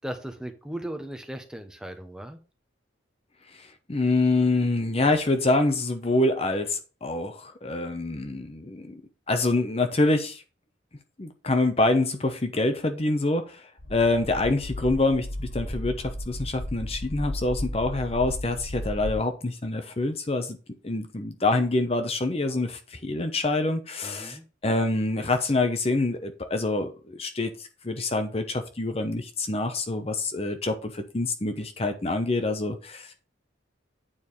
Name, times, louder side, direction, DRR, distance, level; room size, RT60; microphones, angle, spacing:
voice 1, 0.0-2.4 24.0-24.4, right 1 dB, 5° right, 6 dB, 1.0 m, -37 dB
voice 2, 3.5-9.0 9.3-10.4 11.2-20.6 20.8-33.2, left 2 dB, 30° left, 7 dB, 0.8 m, -26 dB
sound 1, 13.8-19.1, left 1 dB, 85° left, 3.0 m, -34 dB
8.8 x 4.6 x 5.4 m, 0.34 s
head